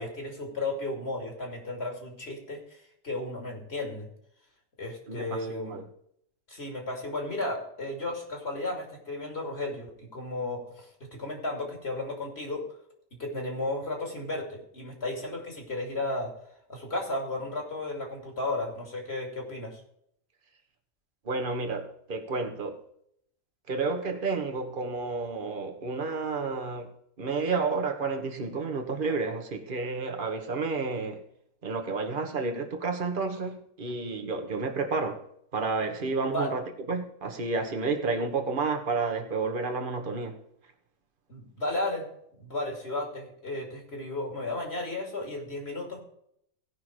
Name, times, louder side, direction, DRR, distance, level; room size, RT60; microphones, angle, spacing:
voice 1, 0.0-4.1 4.8-5.8 6.5-12.7 13.2-16.3 16.7-19.8 36.2-36.5 41.3-42.1 42.4-46.0, left 2 dB, 55° left, 2.9 m, -34 dB
voice 2, 5.1-5.8 21.2-22.8 23.7-26.9 27.2-31.2 31.6-35.2 35.5-40.4, right 4 dB, 40° right, 1.4 m, -31 dB
16.5 x 5.8 x 4.6 m
omnidirectional pair, 1.3 m